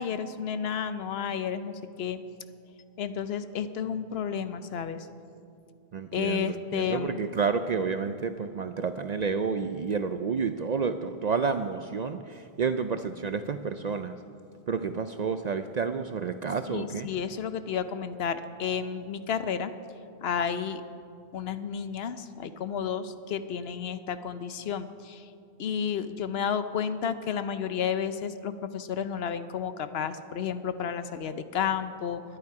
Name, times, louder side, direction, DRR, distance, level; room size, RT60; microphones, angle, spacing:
voice 1, 0.0-2.2 3.0-5.1 6.1-7.2 16.7-19.7 20.2-20.8 21.3-25.3 25.6-32.2, left 7 dB, 70° left, 11 dB, 0.9 m, -31 dB
voice 2, 5.9-14.2 14.7-17.1, right 5 dB, 55° right, 9 dB, 0.5 m, -30 dB
21.0 x 10.0 x 4.8 m, 2.4 s
omnidirectional pair, 1.1 m